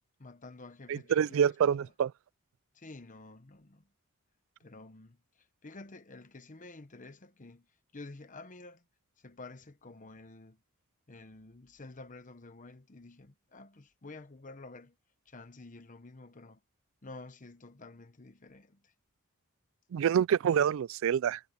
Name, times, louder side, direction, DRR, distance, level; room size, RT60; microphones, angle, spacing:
voice 1, 0.2-1.5 1.8-1.9 2.7-3.9 4.6-7.7 7.9-8.8 9.2-10.6 11.1-15.0 15.2-16.6 17.0-18.9, left 2 dB, 35° left, 1.0 m, -50 dB
voice 2, 0.9-2.1 19.9-21.4, right 8 dB, 65° right, 0.3 m, -27 dB
head